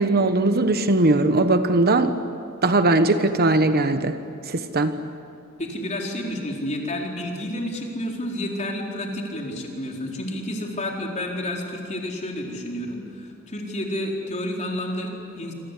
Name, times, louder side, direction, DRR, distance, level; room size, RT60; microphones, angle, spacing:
voice 1, 0.0-2.1 2.6-4.2 4.5-5.0, right 2 dB, 45° right, 9 dB, 1.2 m, -19 dB
voice 2, 5.6-15.5, left 1 dB, 30° left, 0 dB, 4.3 m, -30 dB
27.5 x 25.0 x 8.5 m, 2.5 s
head